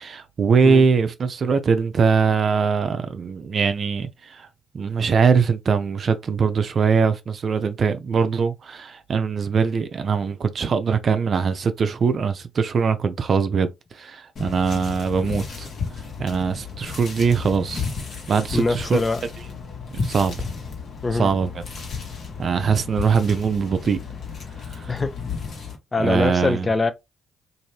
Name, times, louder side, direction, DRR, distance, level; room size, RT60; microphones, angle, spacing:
voice 1, 0.0-4.5 4.7-15.7 16.2-17.8 18.3-19.0 19.9-20.4 21.1-21.6 22.4-24.0 24.7-24.9 26.0-26.7, right 5 dB, 55° right, 0.5 m, -22 dB
sound 1, 14.4-25.8, left 5 dB, 60° left, 1.1 m, -33 dB
voice 2, 18.5-19.2 21.0-21.3 24.9-25.1 25.9-26.9, left 3 dB, 35° left, 0.5 m, -23 dB
2.6 x 2.6 x 3.2 m
hypercardioid pair, 45°, 0 cm